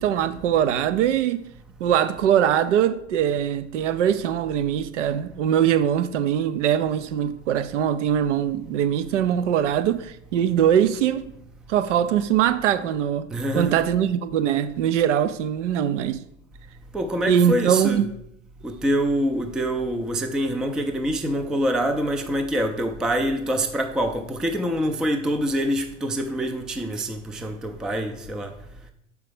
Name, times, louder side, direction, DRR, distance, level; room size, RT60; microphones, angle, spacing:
voice 1, 0.0-1.4 1.8-11.2 11.7-13.3 13.5-16.2 17.3-18.1, right 9 dB, 70° right, 0.6 m, -22 dB
voice 2, 13.3-13.8 16.9-18.1 18.6-28.5, equal, ahead, 0.4 m, -25 dB
6.7 x 4.8 x 4.9 m
hypercardioid pair, 95°, 37 cm